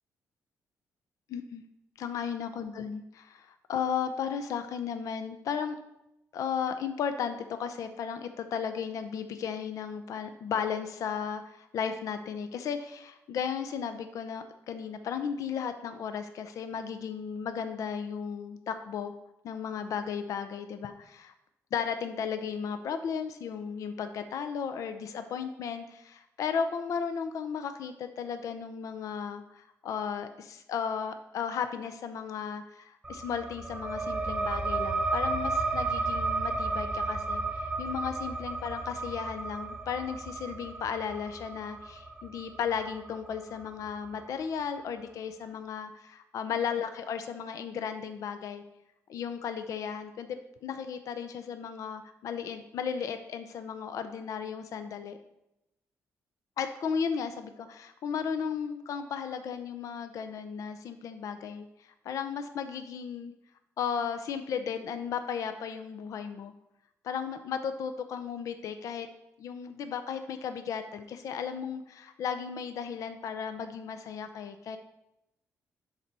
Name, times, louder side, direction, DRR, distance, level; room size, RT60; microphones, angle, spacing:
voice 1, 1.3-1.6 2.0-5.8 6.3-19.1 19.4-21.3 21.7-48.6 49.1-55.2 56.6-61.7 62.0-63.3 63.8-66.5 67.0-69.1 69.4-74.8, left 7 dB, 70° left, 9 dB, 0.6 m, -35 dB
sound 1, 33.0-44.2, right 3 dB, 15° right, 0.8 m, -33 dB
11.0 x 4.0 x 4.2 m, 0.88 s
cardioid pair, 140°, 6 cm